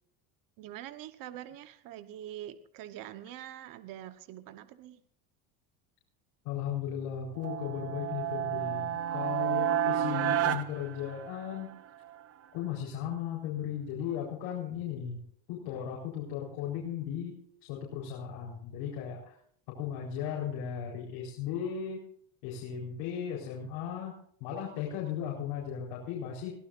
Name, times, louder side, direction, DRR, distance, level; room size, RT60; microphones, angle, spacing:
voice 1, 0.6-5.0, right 12 dB, 50° right, 11 dB, 1.2 m, -44 dB
voice 2, 6.4-11.7 12.5-15.2 15.5-17.3 17.6-19.3 19.8-22.0 22.4-24.1 24.4-26.5, left 8 dB, 90° left, -2 dB, 4.5 m, -36 dB
sound 1, 7.4-11.7, right 10 dB, 35° right, 0.7 m, -31 dB
22.0 x 16.5 x 2.6 m, 0.63 s
cardioid pair, 165°, 43 cm